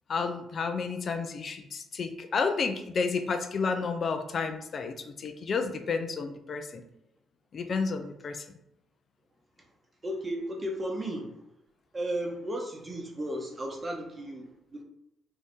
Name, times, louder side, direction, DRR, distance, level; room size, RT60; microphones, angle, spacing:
voice 1, 0.1-6.8 7.5-8.4, left 5 dB, 55° left, 7 dB, 0.4 m, -31 dB
voice 2, 10.0-11.4 11.9-14.8, right 1 dB, 30° right, 1 dB, 0.9 m, -34 dB
2.7 x 2.4 x 3.5 m, 0.82 s
supercardioid pair, 60°, 0 cm